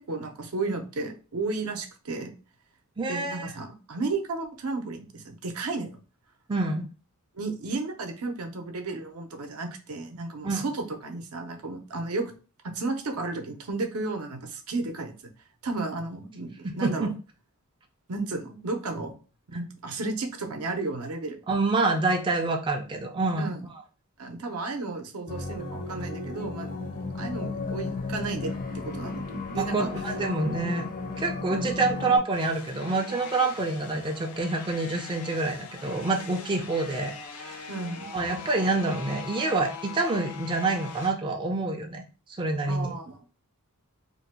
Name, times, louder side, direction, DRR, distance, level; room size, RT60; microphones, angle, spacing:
voice 1, 0.0-2.3 3.1-6.0 7.3-12.3 12.6-15.1 15.6-17.1 18.1-19.1 19.5-21.4 23.4-23.6 24.2-26.8 27.1-29.9 31.5-31.7 37.7-38.1 42.7-43.3, right 3 dB, 80° right, 4 dB, 0.6 m, -33 dB
voice 2, 3.0-3.5 6.5-6.9 10.4-10.6 16.6-17.1 21.5-23.5 29.6-30.8 31.2-37.7 38.1-42.0 42.3-43.0, right 3 dB, 20° right, 2 dB, 0.4 m, -27 dB
sound 1, 25.3-32.2, left 3 dB, 40° left, 0.5 m, -34 dB
sound 2, 32.3-41.1, left 5 dB, 85° left, 0.6 m, -42 dB
2.6 x 2.2 x 4.0 m, 0.36 s
head